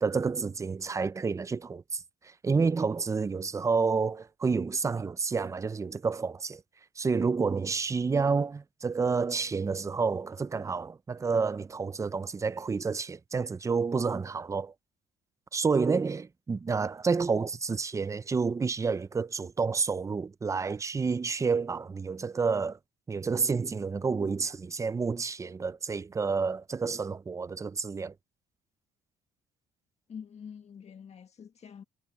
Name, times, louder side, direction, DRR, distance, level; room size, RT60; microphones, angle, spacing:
voice 1, 0.0-6.6 7.0-14.7 15.5-22.8 23.1-28.1, right 5 dB, 20° right, 0.5 m, -29 dB
voice 2, 30.1-31.8, left 7 dB, 40° left, 1.8 m, -46 dB
cardioid pair, 110°, 17 cm